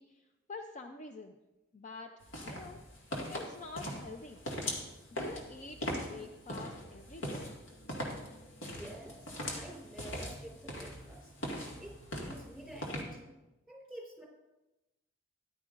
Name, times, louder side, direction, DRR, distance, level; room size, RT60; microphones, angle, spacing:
voice 1, 0.0-1.3 1.7-2.8 3.3-4.4 5.1-7.6, left 3 dB, 40° left, 5 dB, 0.5 m, -47 dB
sound 1, 2.2-13.0, equal, 75° left, 2.0 m, -41 dB
voice 2, 8.6-11.3 11.8-13.3 13.7-14.2, right 1 dB, 5° left, -2 dB, 4.1 m, -49 dB
14.5 x 11.0 x 2.5 m, 1.0 s
head